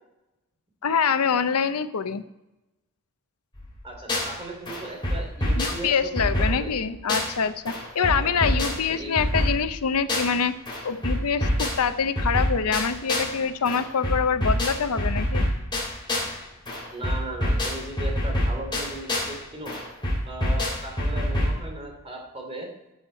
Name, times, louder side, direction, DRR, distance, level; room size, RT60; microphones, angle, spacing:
voice 1, 0.8-2.2 5.6-10.5 10.8-15.5, left 6 dB, 80° left, 12 dB, 0.6 m, -25 dB
sound 1, 3.6-4.4 4.7-7.4 7.7-10.4 10.7-13.4 13.7-16.4 16.7-19.4 19.7-21.6, left 1 dB, 20° left, 3.4 m, -26 dB
voice 2, 3.8-6.7 8.0-8.5 8.9-9.2 16.9-19.8 20.3-22.7, right 1 dB, 25° right, 1 dB, 2.7 m, -37 dB
13.5 x 6.4 x 4.4 m, 0.98 s
head